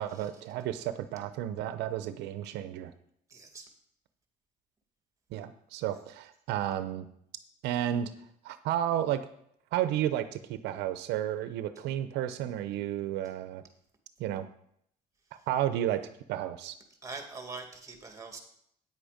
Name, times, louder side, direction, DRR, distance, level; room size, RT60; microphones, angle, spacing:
voice 1, 0.0-2.9 5.3-7.1 7.6-8.1 8.4-9.2 9.7-13.6 14.2-14.5 15.5-16.8, right 11 dB, 90° right, 11 dB, 0.7 m, -32 dB
voice 2, 3.3-3.7 17.0-18.4, right 4 dB, 20° right, 4 dB, 2.1 m, -43 dB
9.3 x 7.9 x 5.0 m, 0.70 s
cardioid pair, 110°, 17 cm